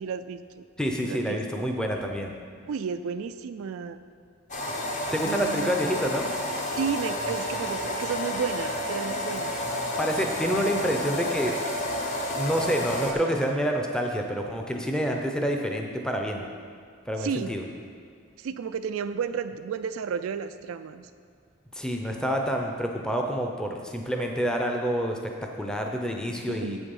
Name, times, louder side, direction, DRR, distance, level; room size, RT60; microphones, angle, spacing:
voice 1, 0.0-0.6 1.0-1.7 2.7-4.0 5.2-5.7 6.8-9.6 17.2-17.5 18.4-21.1 26.5-26.8, right 6 dB, 80° right, 10 dB, 0.4 m, -32 dB
voice 2, 0.8-2.3 5.1-6.3 10.0-11.6 12.4-16.4 17.1-17.6 21.7-26.8, equal, 5° left, 2 dB, 0.6 m, -28 dB
sound 1, 4.5-13.1, left 1 dB, 35° left, 1.0 m, -30 dB
8.1 x 7.0 x 5.4 m, 2.2 s
head